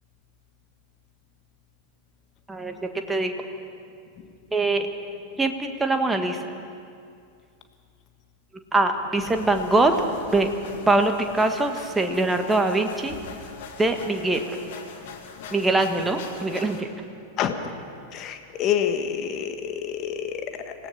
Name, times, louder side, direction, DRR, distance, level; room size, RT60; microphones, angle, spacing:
voice 1, 4.5-4.9 5.4-6.4 8.7-9.9 10.3-10.5 10.9-13.2 13.8-14.6 15.5-16.9, right 2 dB, 10° right, 5 dB, 1.6 m, -23 dB
sound 1, 9.2-16.8, left 5 dB, 55° left, 2.3 m, -41 dB
voice 2, 18.1-20.7, left 9 dB, 35° left, 7 dB, 1.5 m, -27 dB
26.0 x 17.5 x 5.8 m, 2.4 s
figure-of-eight pair, 90°, 0 cm